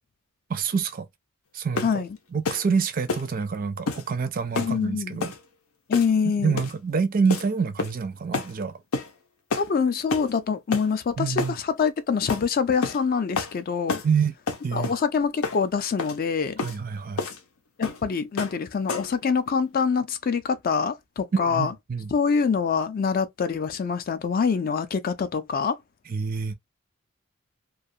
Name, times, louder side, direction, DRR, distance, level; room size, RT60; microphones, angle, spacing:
voice 1, 0.5-1.1 1.5-2.0 2.3-5.3 6.4-8.7 11.2-11.6 14.0-14.3 14.6-14.9 16.6-17.2 21.3-22.1 26.1-26.5, right 5 dB, 40° right, 0.4 m, -26 dB
sound 1, 1.8-2.0 2.5-2.7 3.1-3.3 3.9-4.1 4.6-4.8 5.2-5.4 5.9-6.2 6.6-6.8 7.3-7.5 7.8-8.1 8.3-8.5 8.9-9.1 9.5-9.7 10.1-10.3 10.7-10.9 11.4-11.6 12.3-12.5 12.8-13.0 13.4-13.6 13.9-14.1 14.5-15.0 15.4-15.6 16.0-16.2 16.6-16.8 17.2-17.4 17.8-18.0 18.4-18.6 18.9-19.2, left 4 dB, 90° left, 0.7 m, -29 dB
voice 2, 4.6-5.2 5.9-6.6 9.5-14.0 14.7-16.6 17.8-21.7 22.1-25.8, left 5 dB, 40° left, 0.3 m, -25 dB
2.3 x 2.3 x 2.6 m
head